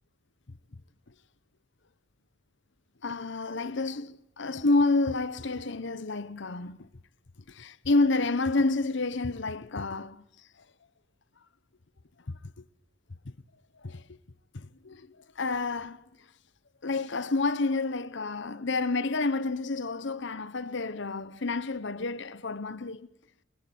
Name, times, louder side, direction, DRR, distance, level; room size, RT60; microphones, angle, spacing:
voice 1, 3.0-6.9 7.5-10.2 12.3-12.4 13.2-13.3 13.8-14.0 14.5-16.0 16.8-23.1, left 3 dB, 65° left, 1.0 m, -29 dB
25.0 x 21.0 x 9.4 m
head